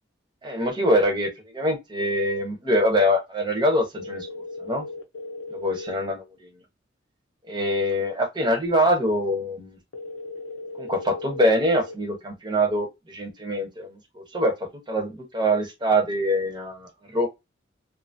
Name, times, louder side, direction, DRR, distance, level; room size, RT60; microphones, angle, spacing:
voice 1, 0.4-4.3 4.6-4.8 5.5-6.5 7.5-9.8 10.8-14.5 14.9-17.3, equal, 25° right, 0.9 m, -24 dB
sound 1, 3.9-6.0 9.9-11.9, left 2 dB, 80° left, 0.7 m, -37 dB
2.8 x 2.6 x 2.5 m
head